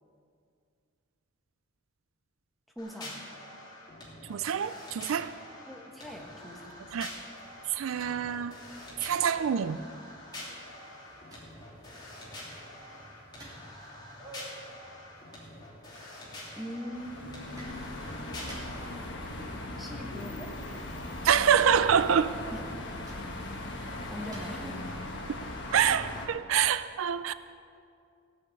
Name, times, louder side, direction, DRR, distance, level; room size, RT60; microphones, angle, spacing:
voice 1, 2.7-3.2 5.7-6.8 16.6-17.9 19.8-20.6 22.5-22.6 24.1-24.9, equal, ahead, 0 dB, 1.2 m, -41 dB
sound 1, 2.8-18.9, left 1 dB, 20° left, 3.0 m, -46 dB
voice 2, 4.3-5.3 6.9-7.1 7.7-8.6 9.0-9.8 21.2-22.3 25.3-25.4 25.7-27.3, right 8 dB, 75° right, 13 dB, 0.4 m, -26 dB
sound 2, 6.2-25.0, right 1 dB, 20° right, 2.6 m, -54 dB
sound 3, 16.9-26.3, left 1 dB, 55° left, 1.6 m, -39 dB
16.0 x 6.4 x 8.4 m, 2.4 s
head